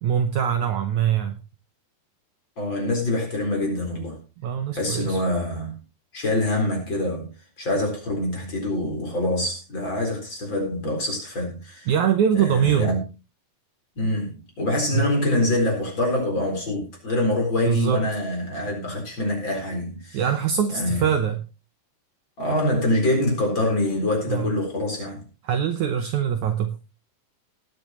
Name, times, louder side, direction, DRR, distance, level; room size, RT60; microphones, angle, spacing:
voice 1, 0.0-1.4 4.4-5.2 11.8-13.0 14.9-15.1 17.6-18.1 20.1-21.4 24.3-24.6 25.4-26.8, right 8 dB, 85° right, 1.6 m, -23 dB
voice 2, 2.6-4.2 4.7-5.8 6.1-7.3 7.6-11.9 12.3-13.0 14.0-20.2 20.7-21.0 22.4-25.2, left 1 dB, 30° left, 4.5 m, -25 dB
19.0 x 9.4 x 3.0 m
omnidirectional pair, 4.8 m